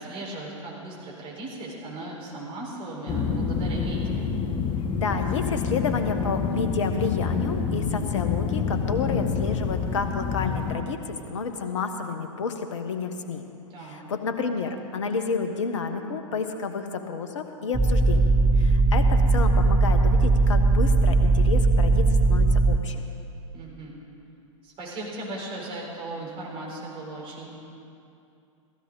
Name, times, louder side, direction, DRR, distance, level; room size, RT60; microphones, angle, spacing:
voice 1, 0.0-4.3 13.7-14.1 23.5-24.0 24.6-27.5, right 2 dB, 30° right, -3 dB, 4.1 m, -37 dB
sound 1, 3.1-10.8, left 5 dB, 30° left, 1.2 m, -27 dB
voice 2, 4.9-13.4 13.8-23.0, left 5 dB, 65° left, 7 dB, 1.2 m, -30 dB
sound 2, 17.7-22.8, right 3 dB, 10° right, 0.7 m, -19 dB
15.5 x 15.5 x 3.9 m, 2.6 s
figure-of-eight pair, 95°, 17 cm